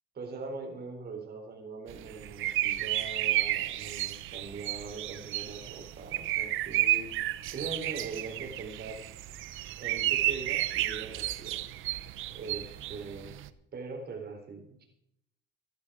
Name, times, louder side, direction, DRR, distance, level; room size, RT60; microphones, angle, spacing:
voice 1, 0.1-9.0 9.8-11.6 12.3-13.3 13.7-14.8, right 4 dB, 55° right, 3 dB, 4.2 m, -41 dB
sound 1, 1.9-13.5, right 15 dB, 90° right, 0.7 m, -32 dB
15.5 x 11.5 x 5.0 m, 0.77 s
cardioid pair, 90°, 20 cm